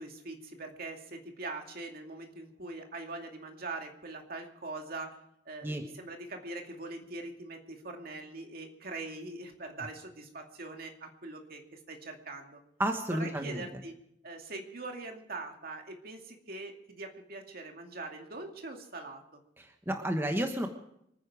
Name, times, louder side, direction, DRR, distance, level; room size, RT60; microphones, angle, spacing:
voice 1, 0.0-5.2 5.5-12.6 13.1-13.9 14.2-19.2, right 2 dB, 55° right, 3 dB, 2.4 m, -42 dB
voice 2, 12.8-13.7 19.6-20.7, right 1 dB, 15° right, 4 dB, 1.2 m, -31 dB
25.5 x 9.9 x 4.9 m, 0.76 s
head